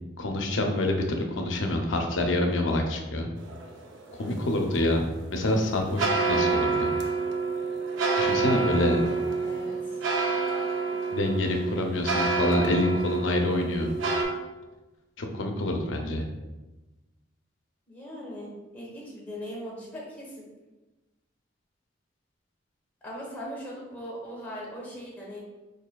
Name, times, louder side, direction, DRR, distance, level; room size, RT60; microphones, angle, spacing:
voice 1, 0.2-3.3 4.1-6.9 8.2-9.0 11.1-13.9 15.2-16.2, left 1 dB, 85° left, 3 dB, 0.5 m, -27 dB
sound 1, 3.4-14.2, right 4 dB, 85° right, 0.5 m, -28 dB
voice 2, 8.7-10.0 17.9-20.4 23.0-25.4, equal, 10° left, -4 dB, 0.9 m, -40 dB
4.9 x 2.6 x 2.2 m, 1.1 s
head